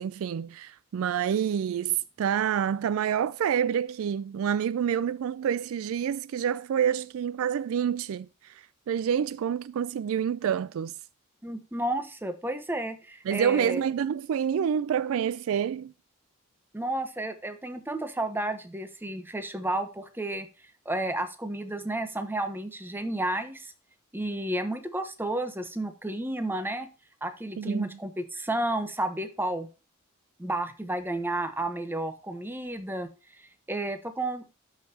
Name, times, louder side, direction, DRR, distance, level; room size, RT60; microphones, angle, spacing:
voice 1, 0.0-10.9 13.3-15.9 27.6-27.9, right 8 dB, 65° right, 0.3 m, -28 dB
voice 2, 11.4-13.8 16.7-20.5 20.8-23.7 24.1-26.9 27.2-29.7 30.4-33.1 33.4-34.4, right 1 dB, 10° right, 0.9 m, -32 dB
12.5 x 5.5 x 2.8 m
head